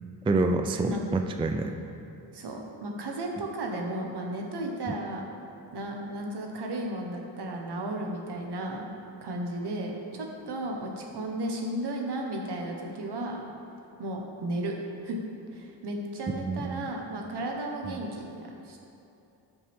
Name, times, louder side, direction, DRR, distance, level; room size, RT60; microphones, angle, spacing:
voice 1, 0.2-1.7 4.9-5.0 16.4-16.9 17.9-18.0, right 3 dB, 15° right, 5 dB, 0.4 m, -27 dB
voice 2, 2.3-5.2 5.7-8.8 9.2-13.4 14.0-14.7 15.0-15.2 15.5-18.8, right 1 dB, 65° right, 1 dB, 1.4 m, -34 dB
13.0 x 6.1 x 3.6 m, 2.8 s
cardioid pair, 100°, 43 cm